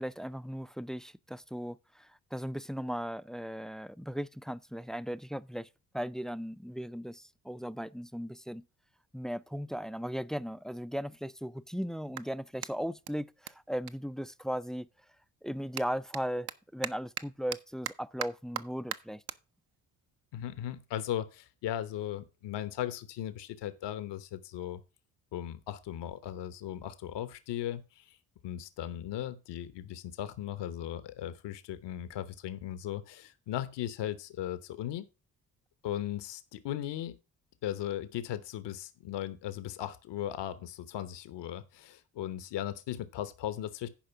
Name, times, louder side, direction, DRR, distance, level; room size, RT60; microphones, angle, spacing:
voice 1, 0.0-5.7 5.9-8.6 9.1-14.9 15.4-19.2, equal, ahead, 0.4 m, -37 dB
Clapping, 11.3-14.8 15.1-21.8, right 11 dB, 55° right, 0.8 m, -44 dB
voice 2, 20.3-24.8 25.3-28.2 28.4-35.1 35.8-37.2 37.6-43.9, left 11 dB, 70° left, 1.0 m, -37 dB
10.5 x 5.0 x 5.7 m
hypercardioid pair, 45°, 44 cm